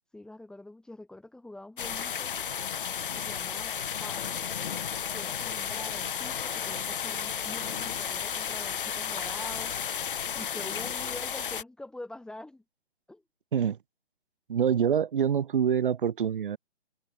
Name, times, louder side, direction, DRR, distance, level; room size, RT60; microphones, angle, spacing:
voice 1, 0.1-2.4 3.1-4.5 5.1-9.8 10.3-12.6 13.1-13.2, left 1 dB, ahead, 3.3 m, -45 dB
sound 1, 1.8-11.6, left 8 dB, 50° left, 0.9 m, -33 dB
voice 2, 14.5-16.6, right 8 dB, 45° right, 4.8 m, -25 dB
figure-of-eight pair, 140°, 35 cm